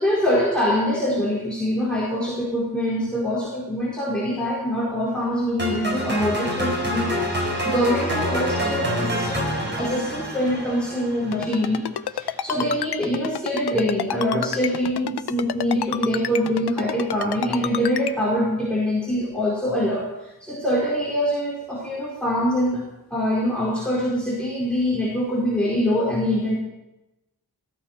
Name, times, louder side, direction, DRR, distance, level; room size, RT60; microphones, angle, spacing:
voice 1, 0.0-11.9 12.1-22.8 23.1-26.6, equal, 5° left, -5 dB, 4.3 m, -24 dB
sound 1, 5.6-11.7, equal, 30° right, 4.3 m, -26 dB
Ringtone, 11.3-18.1, left 9 dB, 85° left, 0.7 m, -28 dB
17.0 x 15.5 x 4.4 m, 0.96 s
wide cardioid pair, 100°, 39 cm